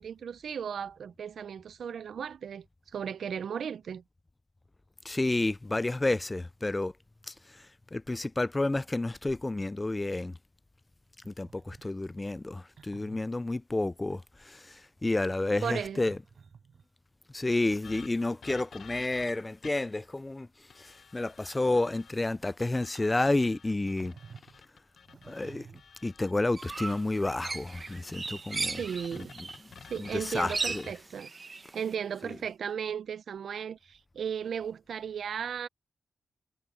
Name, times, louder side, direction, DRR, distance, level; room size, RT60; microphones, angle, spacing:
voice 1, 0.0-2.7 2.9-4.0 15.6-16.0 28.8-29.3 29.8-31.3 31.7-35.7, right 7 dB, 80° right, 0.5 m, -35 dB
voice 2, 5.1-6.9 7.3-7.4 7.9-10.4 11.3-16.2 17.3-20.5 20.8-24.1 25.3-25.7 26.0-28.8 30.0-30.8 32.2-32.4, left 2 dB, 15° left, 0.3 m, -30 dB
sound 1, 11.2-12.0 12.8-13.2 14.1-14.3 14.9-17.0 18.1-18.7 19.3-19.6 19.9-20.4 20.7-20.8 21.3-21.7 22.2-22.6 22.9-23.4 24.0-24.6 25.1-26.0 26.9-27.1, right 6 dB, 60° right, 7.0 m, -54 dB
sound 2, 17.8-20.0 20.7-22.1 22.6-26.3 26.7-30.9, left 7 dB, 70° left, 0.8 m, -52 dB
sound 3, 26.6-29.7 29.9-31.9, right 4 dB, 35° right, 0.8 m, -37 dB
wide cardioid pair, 155°, 0 cm